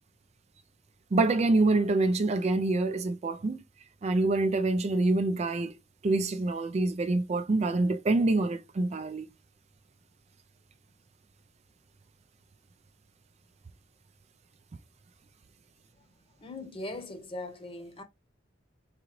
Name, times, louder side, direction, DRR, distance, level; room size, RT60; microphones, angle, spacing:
voice 1, 1.1-3.6 4.0-5.7 6.0-9.3, right 2 dB, 35° right, 0.4 m, -26 dB
voice 2, 16.4-18.0, left 2 dB, 30° left, 1.0 m, -40 dB
3.9 x 3.8 x 3.0 m
head